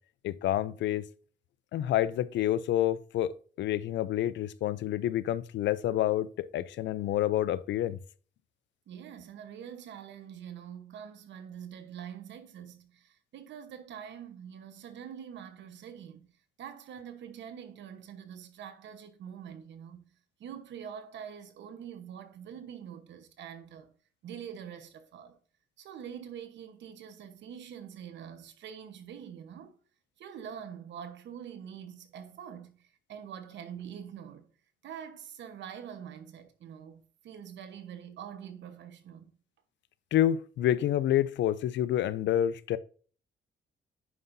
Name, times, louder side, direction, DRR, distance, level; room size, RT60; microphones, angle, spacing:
voice 1, 0.2-1.1 1.7-8.0 40.1-42.8, left 12 dB, 85° left, 0.5 m, -28 dB
voice 2, 8.9-16.3 16.6-20.0 20.4-23.9 24.2-25.4 25.8-29.8 30.2-34.5 34.8-39.3, right 8 dB, 85° right, 1.1 m, -45 dB
9.4 x 5.6 x 2.7 m
cardioid pair, 100°, 18 cm